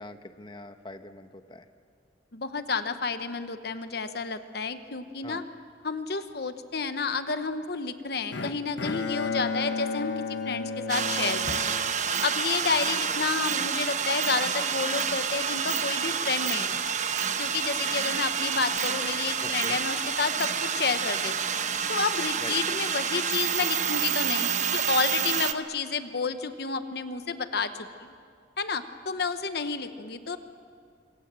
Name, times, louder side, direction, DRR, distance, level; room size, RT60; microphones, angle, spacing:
voice 1, 0.0-1.6 5.2-5.4 19.4-19.8 22.4-22.6, left 2 dB, 25° left, 8 dB, 1.1 m, -42 dB
voice 2, 2.3-5.4 5.8-11.8 12.2-17.0 17.4-21.6 21.9-28.1 28.6-30.4, left 4 dB, 60° left, 10 dB, 1.0 m, -30 dB
Bowed string instrument, 8.3-12.5, left 4 dB, 80° left, 1.2 m, -33 dB
sound 1, 10.9-25.5, right 7 dB, 40° right, 1.0 m, -28 dB
26.5 x 26.0 x 7.6 m, 2.3 s
head